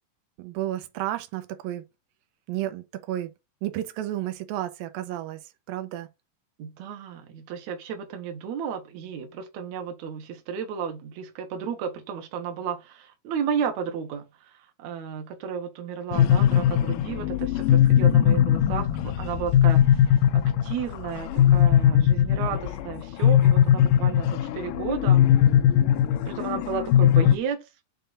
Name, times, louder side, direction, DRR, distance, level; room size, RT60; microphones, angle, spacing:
voice 1, 0.4-1.9 2.5-3.3 3.6-5.4 5.7-6.1, right 13 dB, 90° right, 2.5 m, -32 dB
voice 2, 6.6-14.5 14.8-25.2 26.3-27.6, right 7 dB, 65° right, 2.2 m, -33 dB
sound 1, 16.1-27.4, left 10 dB, 80° left, 2.3 m, -20 dB
6.7 x 3.7 x 4.0 m
omnidirectional pair, 4.0 m